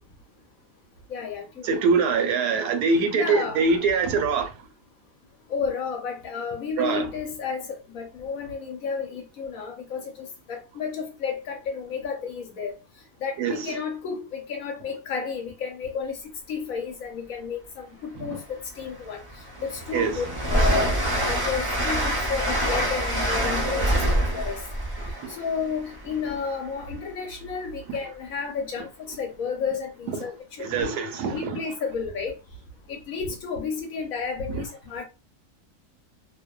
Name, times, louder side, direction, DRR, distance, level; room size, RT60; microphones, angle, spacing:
voice 1, 1.1-1.8 3.1-3.6 5.5-12.8 13.2-16.2 16.5-19.2 19.6-21.0 21.3-24.6 25.3-30.3 30.6-30.9 31.3-32.4 32.9-35.0, left 5 dB, 65° left, 1.0 m, -32 dB
voice 2, 1.6-4.5 6.8-7.1 13.4-13.7 18.2-18.3 19.9-20.2 25.0-25.4 30.6-31.6, right 4 dB, 75° right, 1.1 m, -24 dB
Train, 18.4-18.5 18.9-26.6, right 1 dB, 25° right, 0.5 m, -26 dB
2.8 x 2.0 x 2.2 m
omnidirectional pair, 1.7 m